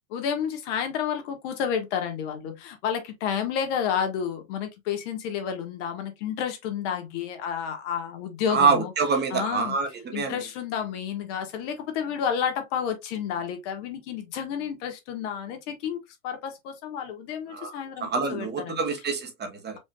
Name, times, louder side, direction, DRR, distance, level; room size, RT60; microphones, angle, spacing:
voice 1, 0.1-8.9 9.3-9.8 10.1-18.8, left 8 dB, 55° left, 1.6 m, -30 dB
voice 2, 8.5-10.4 17.5-17.7 18.0-19.8, right 5 dB, 25° right, 1.1 m, -26 dB
5.0 x 3.1 x 2.3 m
hypercardioid pair, 110°, 42 cm